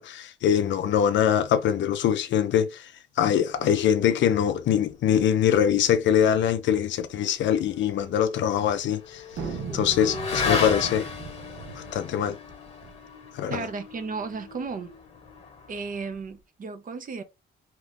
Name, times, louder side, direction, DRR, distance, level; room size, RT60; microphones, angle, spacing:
voice 1, 0.0-2.9 3.2-9.2 9.7-11.1 11.8-12.4 13.3-13.7, left 9 dB, 70° left, 0.5 m, -23 dB
Motorcycle / Accelerating revving vroom, 7.5-16.2, left 4 dB, 35° left, 1.1 m, -35 dB
sound 1, 9.3-13.0, right 5 dB, 80° right, 0.9 m, -38 dB
voice 2, 13.5-14.9 15.7-17.2, right 4 dB, 45° right, 0.7 m, -34 dB
2.9 x 2.4 x 3.4 m
cardioid pair, 90°, 20 cm